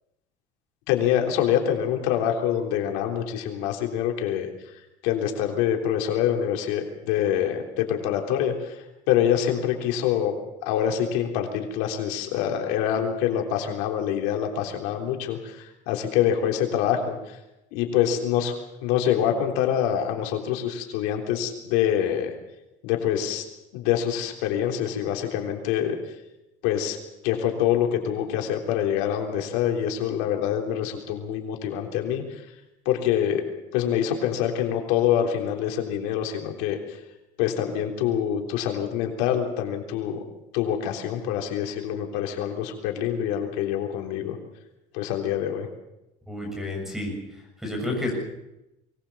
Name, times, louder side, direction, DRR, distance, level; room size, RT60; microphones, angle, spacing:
voice 1, 0.9-4.5 5.0-10.3 10.6-17.4 17.7-18.5 18.8-22.3 22.8-23.4 23.7-26.0 26.6-27.0 27.2-32.2 32.9-33.4 33.7-36.8 37.4-40.2 40.5-44.4 44.9-45.7, left 10 dB, 80° left, 2 dB, 3.5 m, -25 dB
voice 2, 46.3-47.1 47.6-48.1, left 2 dB, ahead, 1 dB, 7.3 m, -30 dB
23.5 x 19.0 x 7.2 m, 0.91 s
cardioid pair, 165°, 15 cm